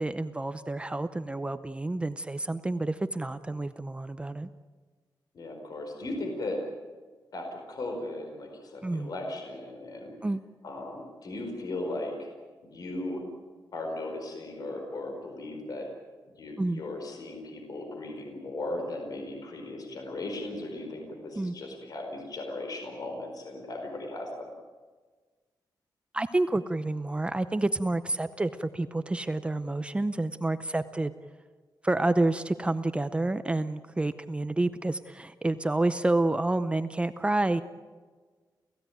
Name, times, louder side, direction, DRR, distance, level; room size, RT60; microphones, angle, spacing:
voice 1, 0.0-4.5 8.8-9.1 10.2-10.4 16.6-16.8 21.4-21.5 26.1-31.1 31.8-37.6, right 2 dB, 15° right, 11 dB, 0.6 m, -29 dB
voice 2, 5.3-6.6 7.3-10.1 10.6-12.3 12.6-13.2 13.7-15.9 16.4-24.5, left 2 dB, 55° left, 3 dB, 4.6 m, -37 dB
29.5 x 16.0 x 9.3 m, 1.5 s
wide cardioid pair, 165°, 8 cm